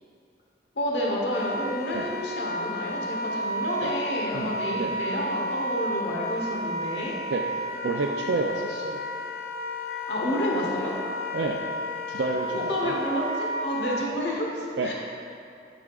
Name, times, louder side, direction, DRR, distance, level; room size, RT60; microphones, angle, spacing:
voice 1, 0.7-7.1 10.1-10.9 12.5-14.9, equal, 80° left, -2 dB, 1.1 m, -29 dB
Wind instrument woodwind instrument, 1.3-14.0, left 1 dB, 55° left, 0.5 m, -32 dB
voice 2, 4.3-4.9 7.3-7.4 7.8-9.1 11.3-11.6 12.1-12.9 14.8-14.9, right 3 dB, 80° right, -1 dB, 0.4 m, -29 dB
11.0 x 5.0 x 2.4 m, 2.6 s
head